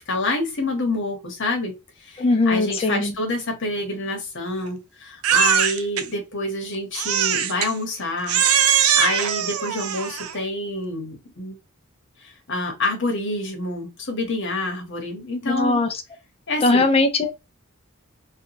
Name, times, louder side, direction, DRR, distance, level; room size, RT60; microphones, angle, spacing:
voice 1, 0.0-1.7 2.0-8.4 8.7-11.6 12.2-15.8 16.5-16.9, left 2 dB, 55° left, 1.0 m, -27 dB
voice 2, 2.2-3.1 15.4-15.9 16.6-17.3, left 2 dB, 25° left, 0.4 m, -19 dB
Crying sobbing, 5.2-6.0 6.9-7.7 8.3-10.4, right 8 dB, 75° right, 0.4 m, -21 dB
2.7 x 2.3 x 2.8 m
head